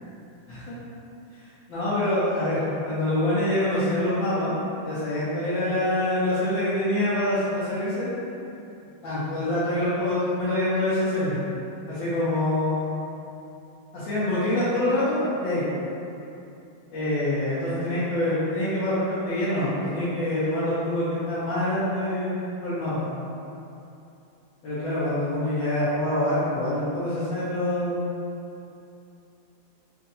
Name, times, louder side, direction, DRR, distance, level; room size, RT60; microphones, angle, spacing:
voice 1, 1.4-4.5 4.8-8.1 9.0-11.4 11.9-13.0 13.9-15.6 16.9-23.1 24.6-28.1, left 1 dB, 90° left, -13 dB, 1.6 m, -25 dB
4.3 x 2.6 x 2.7 m, 2.7 s
omnidirectional pair, 2.0 m